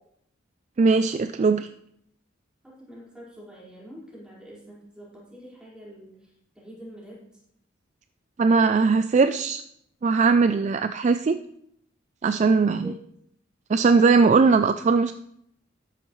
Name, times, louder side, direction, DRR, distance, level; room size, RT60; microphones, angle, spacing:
voice 1, 0.8-1.7 8.4-9.6 10.0-11.4 12.2-12.9 13.7-15.1, right 4 dB, 35° right, 10 dB, 0.3 m, -20 dB
voice 2, 2.6-7.2 12.8-12.9, equal, 5° right, -7 dB, 4.6 m, -45 dB
13.0 x 10.5 x 3.2 m, 0.71 s
head